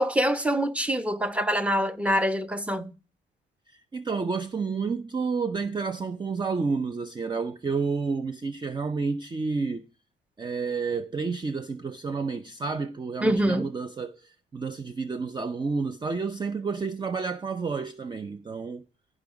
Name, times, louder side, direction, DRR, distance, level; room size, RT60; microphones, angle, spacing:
voice 1, 0.0-2.9 13.2-13.7, equal, 5° right, 0.9 m, -25 dB
voice 2, 3.7-9.8 10.4-18.8, right 4 dB, 20° right, 0.6 m, -30 dB
14.5 x 5.0 x 5.2 m
cardioid pair, 90°, 20 cm